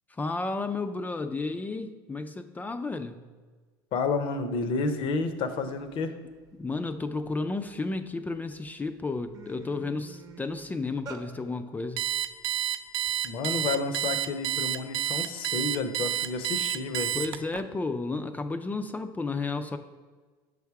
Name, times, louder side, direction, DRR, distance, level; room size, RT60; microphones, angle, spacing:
voice 1, 0.1-3.2 6.6-12.1 17.1-19.8, left 3 dB, 15° left, 9 dB, 0.3 m, -32 dB
voice 2, 3.9-6.1 13.2-17.1, left 4 dB, 50° left, 9 dB, 0.6 m, -30 dB
sound 1, 5.2-5.3 5.5-5.9 6.4-8.0 8.5-8.7 9.0-11.2, right 3 dB, 35° right, 0.8 m, -46 dB
Alarm, 12.0-17.6, right 11 dB, 60° right, 0.3 m, -29 dB
6.4 x 3.5 x 4.7 m, 1.4 s
supercardioid pair, 95°, 11 cm